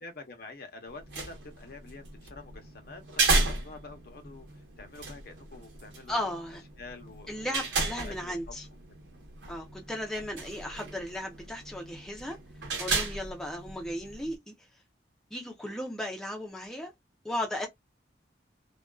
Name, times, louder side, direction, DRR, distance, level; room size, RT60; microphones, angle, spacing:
voice 1, 0.0-6.3 6.8-8.4 9.7-9.9, left 3 dB, 55° left, 0.7 m, -47 dB
sound 1, 0.9-14.4, right 3 dB, 80° right, 0.9 m, -34 dB
voice 2, 6.1-6.6 7.3-8.7 9.5-12.4 12.8-14.5 15.3-16.9 17.2-17.7, left 1 dB, 5° left, 0.5 m, -36 dB
2.4 x 2.2 x 2.3 m
head